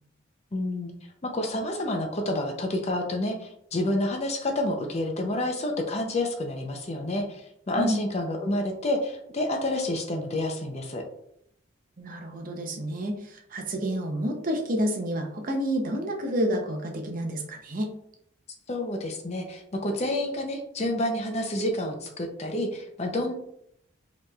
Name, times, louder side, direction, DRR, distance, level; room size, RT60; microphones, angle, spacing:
voice 1, 0.5-0.9 1.2-11.0 18.7-23.3, left 1 dB, 30° left, 3 dB, 0.5 m, -29 dB
voice 2, 12.0-17.9, equal, 40° right, 3 dB, 0.6 m, -29 dB
4.9 x 3.0 x 2.3 m, 0.72 s
head